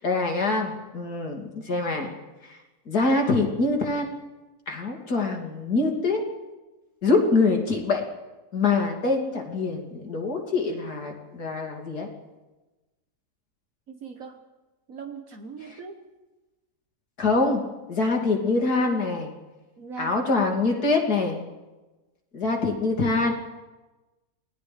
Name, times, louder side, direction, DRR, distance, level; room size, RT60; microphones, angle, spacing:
voice 1, 0.0-2.1 2.4-2.6 2.9-4.2 4.7-6.2 7.0-8.0 8.5-12.1 17.2-17.6 17.9-19.3 20.0-21.4 22.3-23.3, left 3 dB, 75° left, 1 dB, 3.3 m, -24 dB
voice 2, 13.9-14.4 14.9-16.0 19.8-20.9, right 5 dB, 60° right, 4 dB, 1.7 m, -41 dB
28.5 x 19.0 x 5.2 m, 1.1 s
omnidirectional pair, 1.7 m